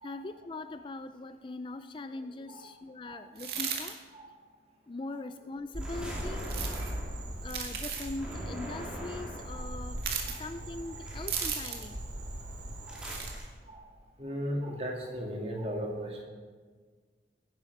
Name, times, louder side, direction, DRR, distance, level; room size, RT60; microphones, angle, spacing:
voice 1, 0.0-4.0 4.9-6.6 7.4-10.0 10.3-12.0, left 2 dB, 25° left, 11 dB, 0.3 m, -41 dB
sound 1, 3.3-3.9 6.4-6.9 7.5-8.1 10.0-10.4 11.3-11.9 12.9-13.3, right 7 dB, 60° right, 2.0 m, -35 dB
Frog, 5.7-13.3, right 1 dB, 80° right, 2.5 m, -40 dB
sound 2, 5.8-7.3 8.2-9.6 11.1-11.6 12.9-13.4, equal, 5° right, 2.7 m, -42 dB
voice 2, 14.2-16.2, equal, 35° right, 0 dB, 2.4 m, -37 dB
17.5 x 10.5 x 4.9 m, 1.5 s
head